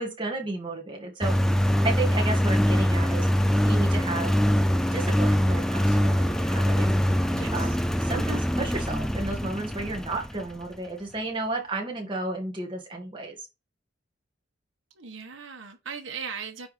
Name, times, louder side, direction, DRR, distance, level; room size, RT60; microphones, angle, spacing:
voice 1, 0.0-1.3 1.8-3.3 3.6-4.3 4.9-7.0 7.5-13.5, right 2 dB, 25° right, 1.8 m, -32 dB
Engine, 1.2-10.6, equal, 5° left, 0.4 m, -23 dB
voice 2, 7.3-7.8 14.9-16.7, right 6 dB, 85° right, 1.3 m, -38 dB
9.3 x 3.5 x 3.3 m
head